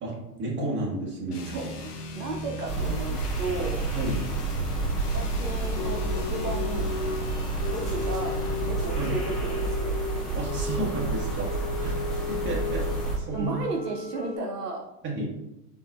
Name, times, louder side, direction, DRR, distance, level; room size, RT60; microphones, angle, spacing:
voice 1, 0.0-1.5 3.9-4.2 9.0-9.1 10.3-11.5 11.8-12.0 12.3-13.6 15.0-15.3, right 1 dB, 25° right, -3 dB, 1.5 m, -32 dB
sound 1, 1.3-8.8, left 1 dB, 70° left, 0.9 m, -38 dB
voice 2, 1.4-3.8 5.1-6.9 7.7-8.4 8.6-9.9 13.3-14.8, right 3 dB, 75° right, 1 dB, 0.8 m, -34 dB
sound 2, 2.7-13.2, right 3 dB, ahead, 0.3 m, -30 dB
sound 3, 5.8-7.3 7.6-13.0 13.3-14.4, left 4 dB, 20° left, 0.8 m, -35 dB
7.8 x 2.6 x 2.3 m, 0.90 s
figure-of-eight pair, 95°, 47 cm